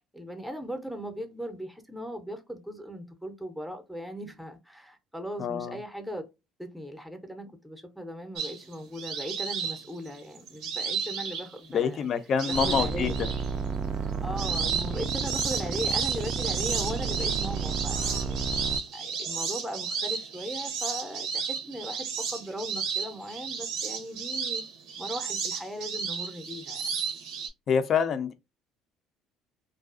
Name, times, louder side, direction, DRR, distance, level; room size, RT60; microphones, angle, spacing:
voice 1, 0.0-6.2 6.6-12.1 12.6-13.1 14.2-18.4 18.9-24.6 25.0-26.8, equal, ahead, 0.6 m, -38 dB
voice 2, 5.4-5.8 11.7-13.3 27.7-28.3, left 7 dB, 50° left, 0.4 m, -26 dB
sound 1, 8.4-11.8 12.4-13.5 13.9-27.5, right 6 dB, 75° right, 0.6 m, -32 dB
sound 2, 12.5-18.8, right 5 dB, 40° right, 0.3 m, -32 dB
2.5 x 2.3 x 2.4 m
supercardioid pair, 90°, 0 cm